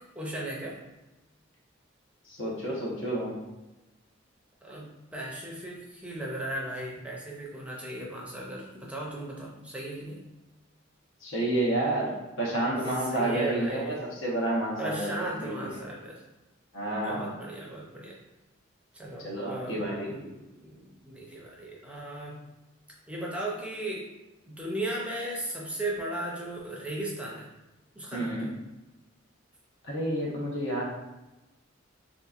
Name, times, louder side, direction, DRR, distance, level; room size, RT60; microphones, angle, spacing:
voice 1, 0.2-0.8 4.6-10.2 13.1-14.0 14.8-16.2 16.9-18.1 18.9-20.3 20.6-22.4 23.1-24.1 24.5-27.5 28.0-28.3, right 1 dB, 5° right, -4 dB, 0.5 m, -36 dB
voice 2, 2.3-3.4 11.2-15.8 16.7-17.4 19.2-20.1 28.1-28.5 29.8-30.8, right 1 dB, 70° left, -3 dB, 1.0 m, -30 dB
3.7 x 2.8 x 2.4 m, 1.0 s
head